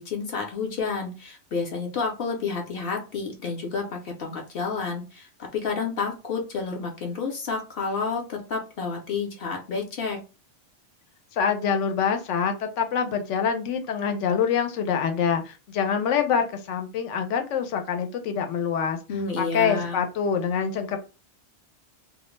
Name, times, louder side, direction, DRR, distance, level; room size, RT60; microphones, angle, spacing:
voice 1, 0.0-10.2 19.1-20.0, left 4 dB, 60° left, 2 dB, 0.8 m, -30 dB
voice 2, 11.3-19.0 19.4-21.0, left 7 dB, 90° left, 6 dB, 0.9 m, -25 dB
2.3 x 2.1 x 3.0 m, 0.31 s
omnidirectional pair, 1.2 m